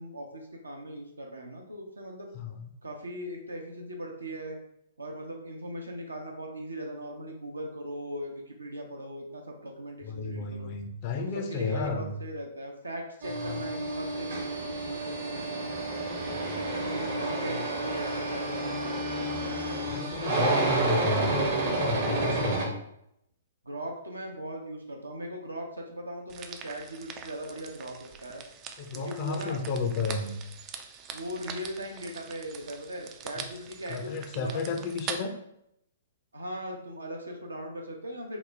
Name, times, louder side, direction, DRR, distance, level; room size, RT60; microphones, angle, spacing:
voice 1, 0.0-2.3 2.8-4.6 5.0-10.7 11.1-15.7 16.2-19.6 23.6-28.4 28.9-29.6 31.1-34.6 36.3-38.4, right 1 dB, 75° right, 1 dB, 0.7 m, -39 dB
voice 2, 2.3-2.7 10.0-12.1 13.5-13.7 19.9-22.7 28.8-30.4 33.4-33.5 33.9-35.3, left 4 dB, 35° left, 4 dB, 0.5 m, -32 dB
sound 1, 13.2-22.6, right 2 dB, 50° right, 0.9 m, -30 dB
sound 2, 26.3-35.2, right 7 dB, 25° right, 0.3 m, -43 dB
3.9 x 2.1 x 3.4 m, 0.77 s
figure-of-eight pair, 115°, 0 cm